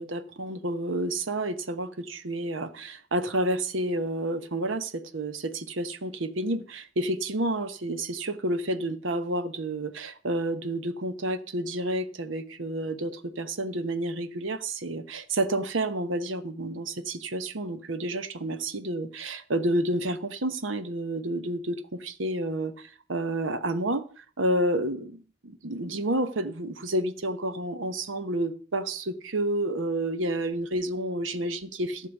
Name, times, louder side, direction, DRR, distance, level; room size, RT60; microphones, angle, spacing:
voice 1, 0.0-24.0 24.4-25.2 25.4-32.1, right 1 dB, 90° right, 1.0 m, -30 dB
14.5 x 6.6 x 5.3 m
head